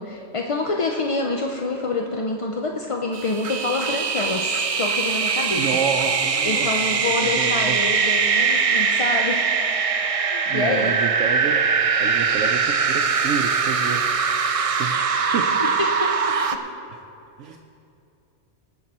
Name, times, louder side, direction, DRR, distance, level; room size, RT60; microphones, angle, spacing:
voice 1, 0.0-5.7 6.0-6.2 6.4-9.5 10.0-10.9 15.4-16.6, left 3 dB, 40° left, 2 dB, 0.4 m, -27 dB
sound 1, 3.1-16.6, right 5 dB, 55° right, 0.4 m, -22 dB
voice 2, 5.6-7.8 10.5-11.7 12.0-14.1 14.8-15.5 16.0-16.1 16.7-16.8 17.4-17.6, right 7 dB, 80° right, 3 dB, 1.0 m, -29 dB
19.0 x 8.0 x 4.2 m, 2.7 s
omnidirectional pair, 1.2 m